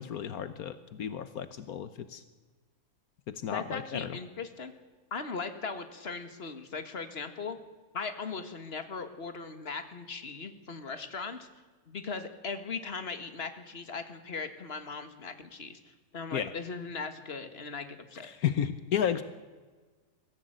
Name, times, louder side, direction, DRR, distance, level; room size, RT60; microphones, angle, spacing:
voice 1, 0.0-2.2 3.3-4.2 16.3-16.5 18.2-19.2, left 9 dB, 80° left, 12 dB, 1.5 m, -33 dB
voice 2, 3.5-4.7 5.1-7.6 7.9-11.5 11.9-15.8 16.1-18.3, left 4 dB, 45° left, 8 dB, 2.0 m, -38 dB
22.5 x 15.5 x 9.1 m, 1.4 s
omnidirectional pair, 1.5 m